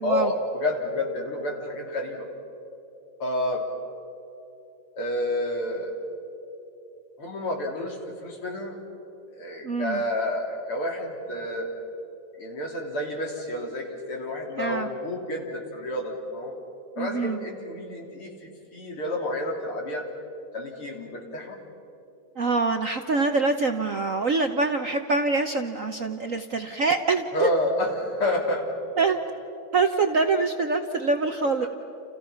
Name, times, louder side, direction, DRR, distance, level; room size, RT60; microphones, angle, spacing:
voice 1, 0.0-2.3 3.2-3.6 5.0-5.9 7.2-8.8 9.3-11.7 12.4-16.5 17.0-20.0 20.5-21.6 27.3-28.7, left 1 dB, 75° left, 0 dB, 4.3 m, -29 dB
voice 2, 9.6-10.0 14.6-14.9 17.0-17.4 22.4-27.5 29.0-29.2 29.7-31.7, right 3 dB, 55° right, 6 dB, 1.0 m, -25 dB
29.5 x 29.0 x 5.8 m, 2.8 s
omnidirectional pair, 2.4 m